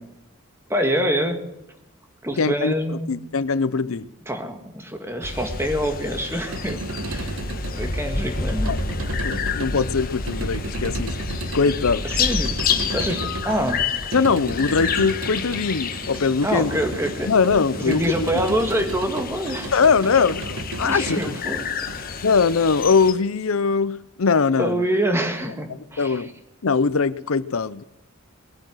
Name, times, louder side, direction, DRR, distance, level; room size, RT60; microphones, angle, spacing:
voice 1, 0.7-1.4 2.2-3.1 4.3-7.4 7.7-8.7 12.0-13.8 16.4-19.7 20.8-21.6 21.9-22.1 24.6-26.2, equal, 10° right, 5 dB, 1.9 m, -26 dB
voice 2, 2.4-4.1 8.6-8.8 9.2-11.1 11.5-12.0 14.1-16.7 17.3-18.3 19.7-21.3 22.2-24.8 26.0-26.3 26.6-27.8, left 5 dB, 85° left, 16 dB, 0.7 m, -21 dB
sound 1, 5.2-23.1, left 5 dB, 45° left, 1.4 m, -29 dB
sound 2, 6.3-22.5, right 2 dB, 85° right, 1.3 m, -34 dB
20.5 x 8.7 x 7.8 m, 0.90 s
head